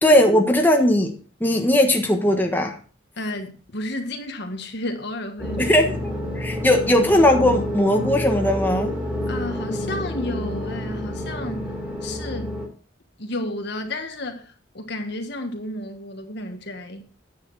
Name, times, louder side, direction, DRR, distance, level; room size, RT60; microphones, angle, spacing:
voice 1, 0.0-1.1 1.4-2.8 5.6-8.9, left 1 dB, 10° left, 1.3 m, -18 dB
voice 2, 3.2-5.7 9.3-11.7 12.0-12.6 13.2-17.0, left 1 dB, 60° left, 1.5 m, -32 dB
sound 1, 5.4-12.7, left 1 dB, 10° right, 3.1 m, -28 dB
9.8 x 8.5 x 4.1 m
head